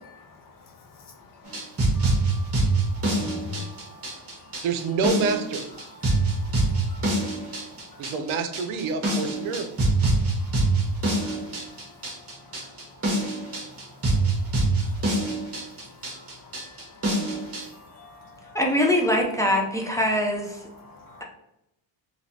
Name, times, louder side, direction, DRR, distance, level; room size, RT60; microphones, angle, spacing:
voice 1, 0.1-4.7 5.8-8.1 9.6-9.7 10.0-20.0 20.6-21.2, left 3 dB, 45° left, 2 dB, 0.6 m, -47 dB
sound 1, 1.4-17.6, right 2 dB, 30° right, 1.2 m, -25 dB
voice 2, 4.6-5.6 8.0-9.8, right 5 dB, 85° right, 8 dB, 0.6 m, -27 dB
voice 3, 18.5-20.6, left 1 dB, 5° left, 0 dB, 0.4 m, -23 dB
3.1 x 2.8 x 2.6 m, 0.84 s
cardioid pair, 100°, 48 cm